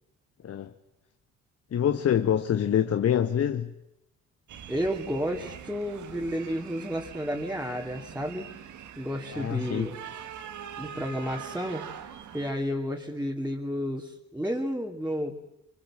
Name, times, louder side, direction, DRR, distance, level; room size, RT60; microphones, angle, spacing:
voice 1, 1.7-3.7 9.3-9.9, left 9 dB, 55° left, 1.2 m, -25 dB
sound 1, 4.5-12.5, right 8 dB, 75° right, 2.0 m, -43 dB
voice 2, 4.7-8.5 9.0-10.0 10.8-12.1 12.3-15.3, equal, 5° right, 2.6 m, -31 dB
25.0 x 23.5 x 7.4 m
cardioid pair, 90°, 30 cm